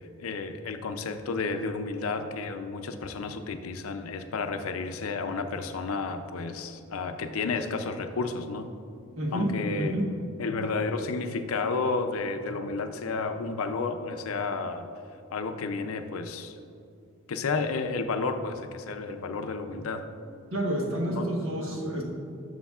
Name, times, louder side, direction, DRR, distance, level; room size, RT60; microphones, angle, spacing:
voice 1, 0.2-8.7 9.3-10.0 10.4-14.9 15.3-16.6 17.3-20.1 21.1-21.3 21.6-21.8, left 4 dB, 80° left, 8 dB, 0.5 m, -31 dB
voice 2, 9.2-10.1 20.5-22.0, right 1 dB, 70° right, -1 dB, 1.2 m, -29 dB
11.5 x 6.1 x 2.4 m, 2.6 s
head